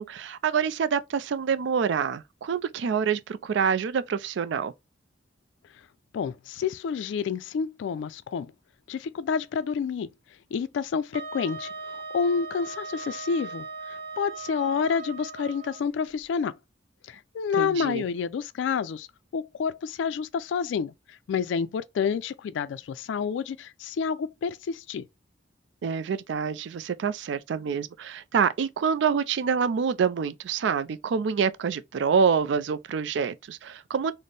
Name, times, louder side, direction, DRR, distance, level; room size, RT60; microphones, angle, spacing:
voice 1, 0.0-4.7 17.6-18.0 25.8-34.1, right 6 dB, 70° right, 0.3 m, -26 dB
voice 2, 6.1-8.5 8.9-10.1 10.5-16.6 17.0-19.1 19.3-25.1, left 6 dB, 70° left, 0.3 m, -29 dB
Wind instrument woodwind instrument, 11.1-15.8, right 4 dB, 30° right, 1.2 m, -39 dB
4.1 x 2.0 x 3.2 m
head